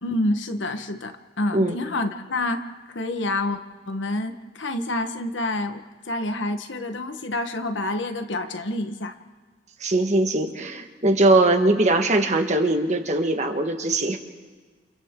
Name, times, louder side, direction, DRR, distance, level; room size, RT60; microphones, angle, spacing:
voice 1, 0.0-2.6 2.9-3.6 3.9-9.1, left 2 dB, 90° left, 7 dB, 1.4 m, -28 dB
voice 2, 9.8-14.2, right 2 dB, 40° right, 5 dB, 1.5 m, -21 dB
29.0 x 28.5 x 3.8 m, 1.5 s
head